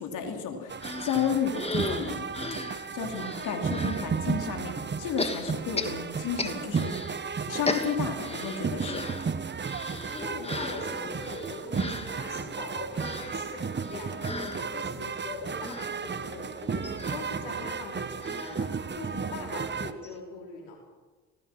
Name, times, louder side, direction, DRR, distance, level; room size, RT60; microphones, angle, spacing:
voice 1, 0.0-2.2 2.9-6.9 7.5-9.2, left 7 dB, 65° left, 3 dB, 3.5 m, -32 dB
sound 1, 0.7-19.9, right 5 dB, 35° right, 1.5 m, -34 dB
sound 2, 0.8-4.1 5.2-7.2 7.4-19.4 19.7-19.8 20.0-20.2, left 2 dB, 20° left, 2.6 m, -37 dB
voice 2, 9.9-20.8, left 3 dB, 85° left, 0 dB, 4.9 m, -41 dB
26.0 x 18.0 x 6.2 m, 1.3 s
hypercardioid pair, 60°, 33 cm